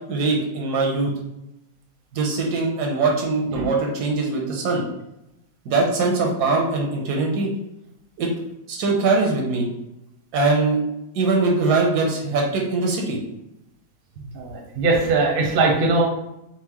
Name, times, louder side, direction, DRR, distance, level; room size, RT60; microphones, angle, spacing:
voice 1, 0.1-1.1 2.1-4.8 5.7-7.5 8.2-8.3 8.7-9.7 10.3-10.8 11.1-13.2, right 3 dB, 80° right, 0 dB, 1.3 m, -22 dB
voice 2, 14.3-16.0, right 3 dB, 50° right, -1 dB, 0.7 m, -20 dB
4.3 x 2.0 x 3.0 m, 0.88 s
omnidirectional pair, 1.7 m